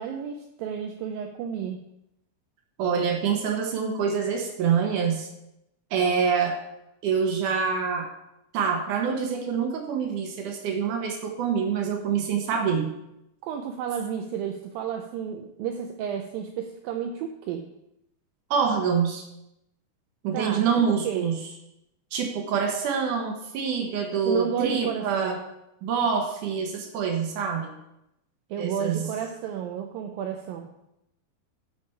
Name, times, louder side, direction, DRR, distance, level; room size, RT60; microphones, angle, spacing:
voice 1, 0.0-1.8 13.4-17.6 20.3-21.3 24.3-25.4 28.5-30.7, right 8 dB, 85° right, 5 dB, 2.0 m, -32 dB
voice 2, 2.8-5.3 5.9-6.6 7.0-8.1 8.5-12.9 18.5-19.3 20.2-21.4 22.1-25.4 25.8-27.7 28.6-29.1, right 6 dB, 70° right, 3 dB, 2.1 m, -26 dB
13.0 x 5.0 x 4.4 m, 0.84 s
omnidirectional pair, 4.7 m